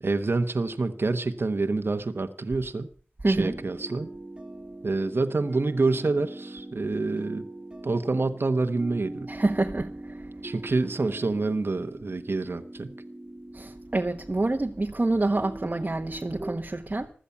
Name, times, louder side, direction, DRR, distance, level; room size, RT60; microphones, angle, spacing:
voice 1, 0.0-2.9 3.3-4.1 4.8-7.5 7.8-9.3 10.4-12.9, right 3 dB, 65° right, 1.1 m, -27 dB
voice 2, 3.2-3.6 9.3-10.3 13.5-17.1, right 2 dB, 40° right, 1.1 m, -27 dB
sound 1, 3.4-16.6, right 1 dB, 20° right, 1.9 m, -42 dB
15.5 x 12.5 x 5.6 m
wide cardioid pair, 70°, 4 cm